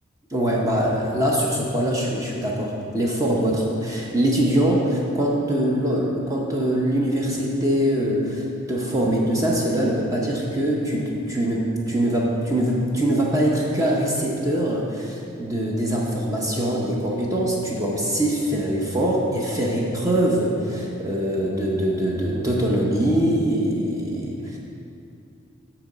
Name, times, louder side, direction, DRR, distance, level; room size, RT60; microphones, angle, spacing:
voice 1, 0.3-24.6, right 1 dB, 15° right, -3 dB, 0.6 m, -23 dB
8.5 x 3.0 x 6.4 m, 2.6 s
head